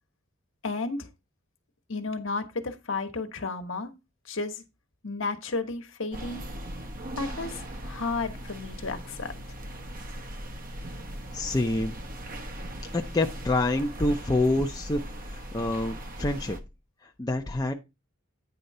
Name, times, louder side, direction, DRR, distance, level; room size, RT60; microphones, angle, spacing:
voice 1, 0.6-1.1 1.9-3.9 4.3-4.6 5.0-6.5 7.1-9.3, left 3 dB, 65° left, 1.3 m, -32 dB
sound 1, 6.1-16.6, right 1 dB, 40° right, 1.1 m, -39 dB
voice 2, 11.3-11.9 12.9-16.6 17.0-17.7, left 2 dB, 20° left, 0.6 m, -27 dB
9.4 x 3.8 x 5.4 m
head